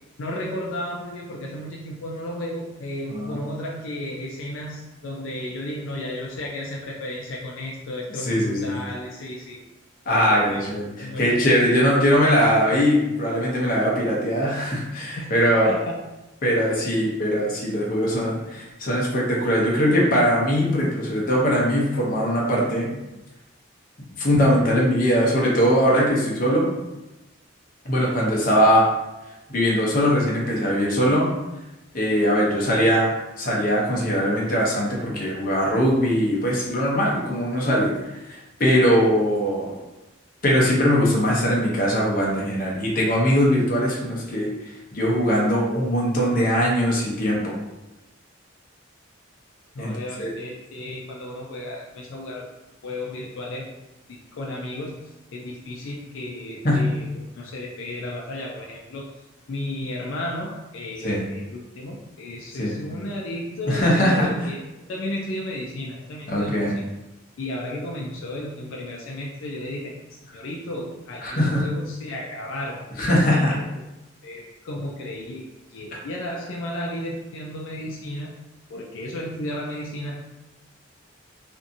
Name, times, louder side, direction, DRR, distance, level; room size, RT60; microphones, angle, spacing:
voice 1, 0.2-9.6 10.1-11.4 15.2-15.4 15.6-16.0 21.9-22.1 49.7-52.5 52.8-53.8 54.1-55.0 55.3-59.1 59.5-66.8 67.4-70.0 70.3-72.9 73.3-73.6 74.2-75.4 75.7-78.3 78.7-80.2, left 1 dB, 75° left, -2 dB, 0.4 m, -33 dB
voice 2, 3.1-3.5 8.2-8.7 10.1-15.7 16.4-22.9 24.2-26.7 27.8-28.9 29.5-31.3 31.9-37.9 38.3-39.7 40.4-44.5 44.9-47.6 49.8-49.9 50.2-50.3 56.6-56.8 61.0-61.2 62.6-62.7 63.7-64.3 66.3-66.7 71.2-71.7 73.0-73.5 75.9-76.0, equal, 45° left, -3 dB, 0.7 m, -21 dB
2.7 x 2.5 x 2.5 m, 0.99 s
head